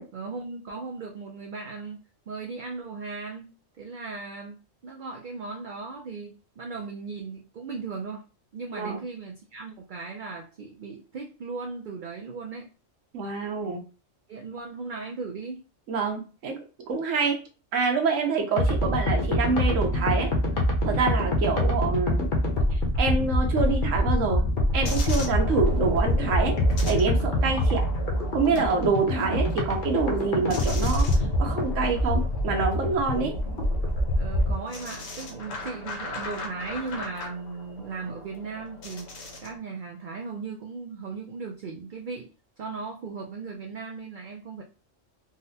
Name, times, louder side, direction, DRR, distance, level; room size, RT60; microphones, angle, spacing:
voice 1, 0.1-2.0 2.3-8.3 8.5-12.7 14.3-15.6 34.1-39.1 39.4-42.3 42.6-44.6, right 4 dB, 65° right, 1 dB, 0.5 m, -37 dB
voice 2, 8.7-9.0 13.1-13.8 15.9-16.6 16.9-17.4 17.7-20.3 20.8-22.3 23.0-24.4 24.7-26.6 26.9-27.8 28.3-31.1 31.4-33.3, right 4 dB, 85° right, 3 dB, 1.1 m, -26 dB
sound 1, 18.6-34.6, left 1 dB, 50° left, 0.8 m, -25 dB
sound 2, 24.8-39.6, left 1 dB, 80° left, 1.3 m, -38 dB
3.8 x 2.1 x 2.7 m, 0.34 s
omnidirectional pair, 1.3 m